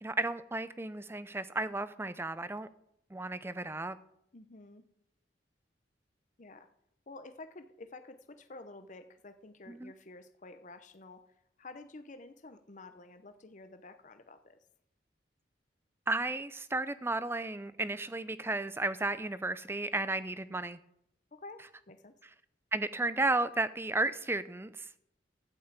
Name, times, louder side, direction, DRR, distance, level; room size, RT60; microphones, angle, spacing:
voice 1, 0.0-2.7 3.1-4.0 9.7-9.9 16.1-20.8 22.7-24.9, right 2 dB, 15° right, 14 dB, 0.5 m, -33 dB
voice 2, 4.3-4.8 6.4-6.7 7.1-11.2 11.6-14.6 21.3-22.1, left 2 dB, 40° left, 9 dB, 0.8 m, -50 dB
12.5 x 5.6 x 8.1 m, 0.76 s
head